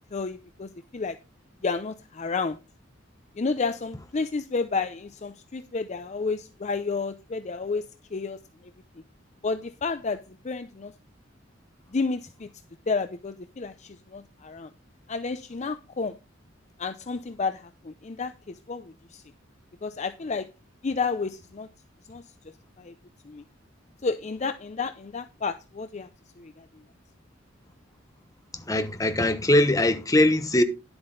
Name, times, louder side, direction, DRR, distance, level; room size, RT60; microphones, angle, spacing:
voice 1, 0.1-1.2 1.6-2.6 3.4-8.7 9.4-10.9 11.9-12.5 12.9-14.7 15.1-16.2 16.8-19.2 19.8-20.5 20.8-21.7 22.1-22.2 22.8-22.9 23.2-23.4 24.0-26.1 26.4-26.7, left 4 dB, 35° left, 0.5 m, -31 dB
voice 2, 28.7-30.6, left 1 dB, 20° left, 1.0 m, -21 dB
10.5 x 7.8 x 3.9 m
head